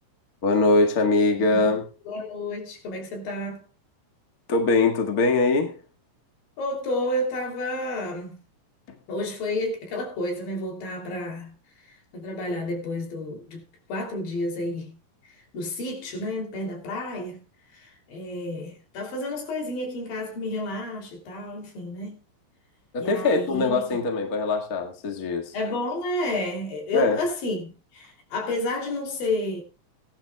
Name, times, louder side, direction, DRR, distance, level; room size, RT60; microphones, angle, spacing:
voice 1, 0.4-1.8 4.5-5.7 8.9-9.0 22.9-25.5 26.9-27.2, left 3 dB, 35° left, 1.7 m, -22 dB
voice 2, 2.1-3.6 6.6-8.4 9.1-11.5 11.8-13.6 13.9-14.9 15.2-17.4 17.7-22.2 23.0-23.8 25.5-29.6, left 1 dB, 85° left, 4.7 m, -30 dB
18.5 x 11.5 x 2.3 m
omnidirectional pair, 3.9 m